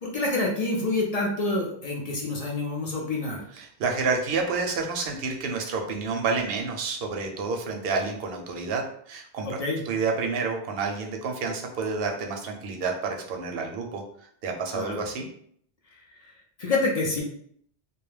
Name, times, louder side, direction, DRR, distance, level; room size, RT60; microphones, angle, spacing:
voice 1, 0.0-3.4 9.5-9.8 14.7-15.0 16.6-17.2, left 2 dB, 50° left, -2 dB, 0.5 m, -27 dB
voice 2, 3.5-9.6 9.8-15.3, right 4 dB, 65° right, 2 dB, 0.7 m, -29 dB
2.3 x 2.1 x 3.1 m, 0.64 s
omnidirectional pair, 1.2 m